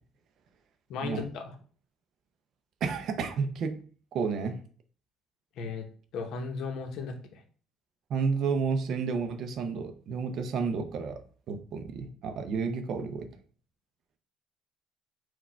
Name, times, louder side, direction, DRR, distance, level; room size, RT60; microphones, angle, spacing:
voice 1, 0.9-1.5 5.6-5.9 6.1-7.4, left 4 dB, 60° left, 5 dB, 0.8 m, -36 dB
voice 2, 2.8-3.8 4.1-4.6 8.1-11.2 11.5-13.3, right 5 dB, 50° right, 8 dB, 0.5 m, -31 dB
4.7 x 2.3 x 4.3 m, 0.42 s
cardioid pair, 160°, 0 cm